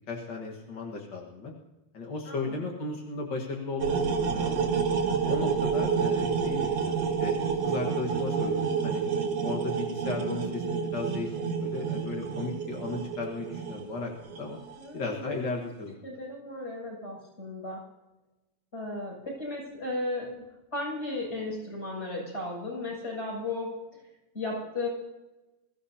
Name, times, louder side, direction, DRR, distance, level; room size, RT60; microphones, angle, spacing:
voice 1, 0.1-1.5 1.9-4.7 5.2-7.4 7.6-9.0 9.4-11.3 11.6-14.6 14.9-16.1, left 3 dB, 55° left, 0 dB, 1.2 m, -35 dB
voice 2, 2.3-2.6 14.8-15.4 16.0-17.8 18.7-20.3 20.7-23.7 24.3-24.9, left 2 dB, 15° left, -4 dB, 6.9 m, -35 dB
sound 1, 3.8-14.7, right 6 dB, 50° right, 2.5 m, -29 dB
22.5 x 15.0 x 2.8 m, 1.0 s
omnidirectional pair, 4.4 m